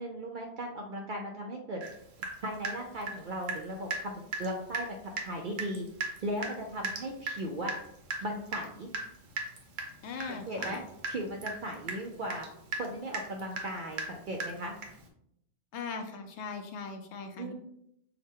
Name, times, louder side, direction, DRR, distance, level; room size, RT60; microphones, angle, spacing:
voice 1, 0.0-1.8 2.4-5.0 5.2-5.9 6.2-7.7 8.2-8.9 10.3-10.8 11.1-12.5 12.8-14.8 17.4-17.5, right 1 dB, 60° right, 1 dB, 0.5 m, -37 dB
Water tap faucet / Drip, 1.8-1.9 2.2-3.6 3.9-4.1 4.3-4.5 4.7-4.9 5.2-5.3 5.6-15.1, right 3 dB, 90° right, 1.2 m, -37 dB
voice 2, 10.0-10.8 15.7-17.5, left 5 dB, 70° left, 6 dB, 0.8 m, -39 dB
5.6 x 2.1 x 3.5 m, 0.75 s
omnidirectional pair, 1.3 m